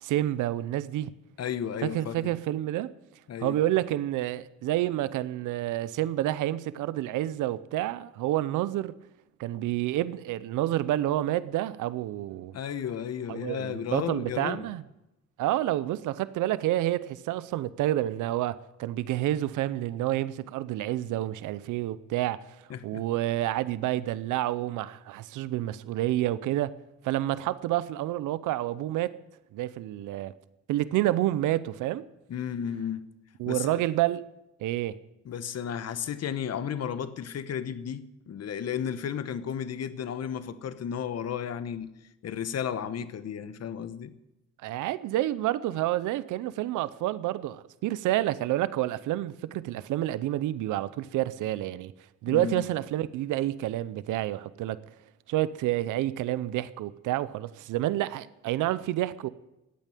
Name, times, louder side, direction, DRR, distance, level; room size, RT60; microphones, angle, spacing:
voice 1, 0.0-1.1 1.9-2.9 3.4-8.9 9.4-12.5 13.3-14.8 15.4-22.4 22.8-26.7 27.0-29.1 29.5-30.3 30.7-32.0 33.4-34.3 34.6-35.0 44.6-51.9 52.2-54.8 55.3-59.3, right 14 dB, 90° right, 0.7 m, -29 dB
voice 2, 1.4-2.3 3.3-3.6 12.5-14.7 22.7-23.0 32.3-33.0 33.4-33.8 35.2-41.9 42.2-44.1 52.3-52.7, left 8 dB, 55° left, 1.2 m, -33 dB
14.0 x 9.0 x 9.1 m
cardioid pair, 90°, 30 cm